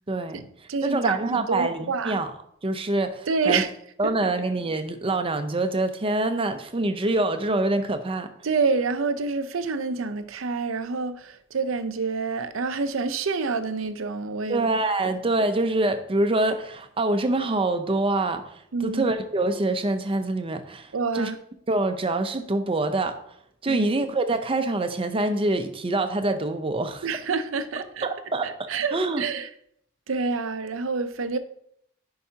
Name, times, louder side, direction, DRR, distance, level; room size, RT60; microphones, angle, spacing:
voice 1, 0.1-0.5 0.8-2.3 2.6-3.6 4.0-8.3 14.5-21.3 21.7-23.4 23.6-27.1 28.0-28.5 28.9-29.2, right 2 dB, 25° right, 0.6 m, -25 dB
voice 2, 0.7-2.2 3.3-3.7 4.0-4.3 8.4-14.7 15.0-15.1 18.7-19.1 20.9-21.4 23.7-23.9 27.0-28.1 28.4-29.5 30.1-31.4, right 4 dB, 75° right, 0.6 m, -27 dB
10.0 x 4.7 x 2.8 m
head